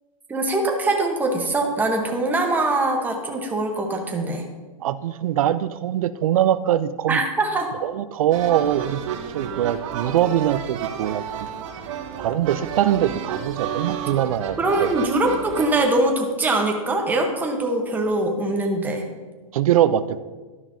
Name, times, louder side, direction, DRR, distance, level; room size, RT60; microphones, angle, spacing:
voice 1, 0.3-4.5 7.1-7.7 14.6-19.1, right 2 dB, 10° right, 1 dB, 1.0 m, -22 dB
voice 2, 4.8-7.2 7.8-9.0 9.3-11.2 12.2-15.0 19.5-20.2, right 11 dB, 70° right, 15 dB, 0.4 m, -22 dB
sound 1, 8.3-15.9, right 8 dB, 55° right, 0.9 m, -31 dB
12.5 x 5.8 x 2.7 m, 1.3 s
hypercardioid pair, 140°, 19 cm